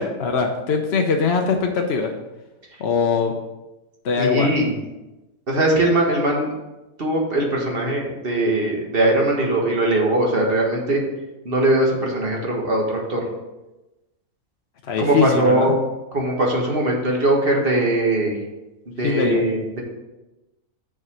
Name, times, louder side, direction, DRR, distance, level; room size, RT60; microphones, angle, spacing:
voice 1, 0.0-2.1 2.8-3.3 4.0-4.5 14.9-15.7 19.0-19.4, left 5 dB, 55° left, 2 dB, 0.9 m, -21 dB
voice 2, 4.2-4.7 5.5-6.5 7.0-11.0 11.5-13.2 15.0-15.8 16.1-18.4 18.9-19.8, right 1 dB, 40° right, -1 dB, 1.7 m, -20 dB
6.8 x 4.9 x 6.1 m, 1.0 s
omnidirectional pair, 1.5 m